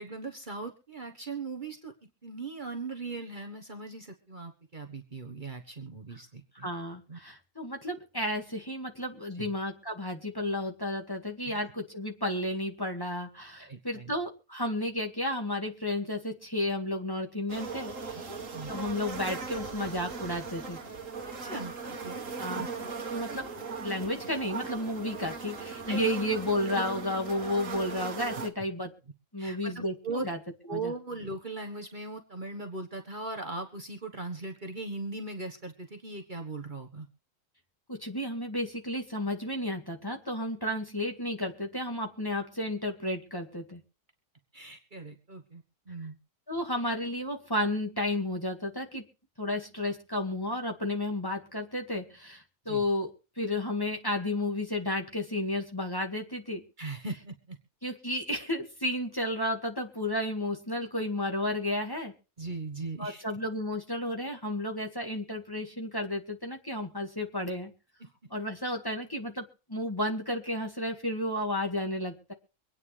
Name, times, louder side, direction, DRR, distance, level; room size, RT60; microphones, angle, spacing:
voice 1, 0.0-6.7 7.1-7.2 9.3-9.5 11.4-11.6 13.6-14.1 18.1-18.2 18.5-18.7 21.2-22.7 25.9-26.0 29.4-30.3 30.7-37.1 44.5-46.2 52.7-52.8 56.8-57.6 62.4-63.2 68.0-68.3, right 3 dB, 40° right, 3 dB, 1.5 m, -39 dB
voice 2, 6.6-18.3 18.7-20.8 22.4-22.6 23.1-23.4 23.8-28.9 29.3-30.4 30.7-30.9 38.0-43.8 46.5-49.0 49.4-53.1 53.4-56.6 57.8-62.1 63.0-67.7 68.3-72.3, left 1 dB, 15° left, 2 dB, 2.0 m, -32 dB
sound 1, 17.5-28.5, right 4 dB, 75° right, 2.0 m, -38 dB
25.0 x 9.4 x 3.4 m, 0.35 s
omnidirectional pair, 1.4 m